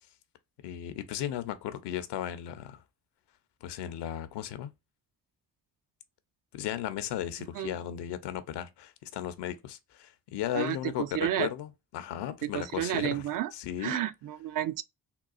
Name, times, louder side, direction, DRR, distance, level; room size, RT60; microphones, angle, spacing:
voice 1, 0.6-2.8 3.6-4.7 6.5-14.0, left 11 dB, 75° left, 0.6 m, -36 dB
voice 2, 10.5-11.5 12.4-13.5 13.8-14.8, right 12 dB, 50° right, 0.5 m, -31 dB
3.8 x 2.3 x 2.3 m
supercardioid pair, 45°, 42 cm